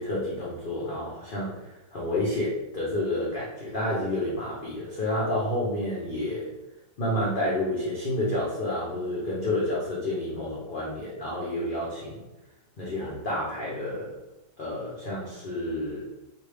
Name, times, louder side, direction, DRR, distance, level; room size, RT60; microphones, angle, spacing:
voice 1, 0.0-6.5 7.0-12.2 12.8-14.2 14.6-16.0, left 1 dB, 60° left, -6 dB, 0.5 m, -30 dB
3.2 x 2.6 x 3.2 m, 0.98 s
omnidirectional pair, 1.8 m